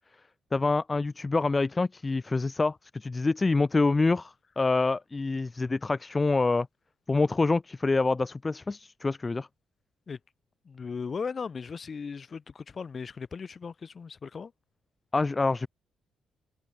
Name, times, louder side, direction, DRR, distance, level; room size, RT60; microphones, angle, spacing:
voice 1, 0.5-6.7 7.1-9.5 15.1-15.7, left 3 dB, 25° left, 0.5 m, -26 dB
voice 2, 10.6-14.5, left 5 dB, 40° left, 6.0 m, -37 dB
cardioid pair, 90°, 0 cm